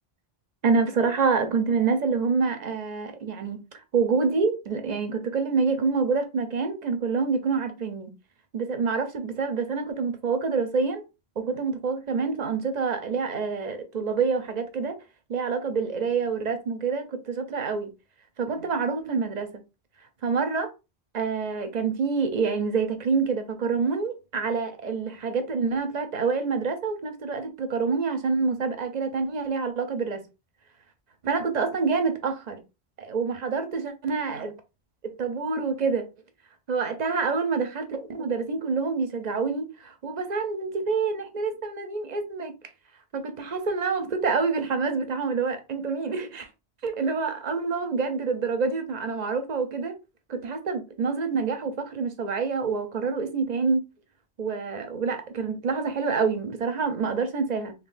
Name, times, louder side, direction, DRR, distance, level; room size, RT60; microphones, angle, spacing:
voice 1, 0.6-8.1 8.5-11.0 11.4-15.0 15.3-17.9 18.4-19.5 20.2-20.7 21.1-30.2 31.2-32.6 33.0-34.5 35.0-36.1 36.7-42.5 43.1-46.5 46.8-50.0 50.3-53.8 54.4-57.7, right 4 dB, 45° right, 0.7 m, -27 dB
3.8 x 2.9 x 2.5 m
omnidirectional pair, 1.1 m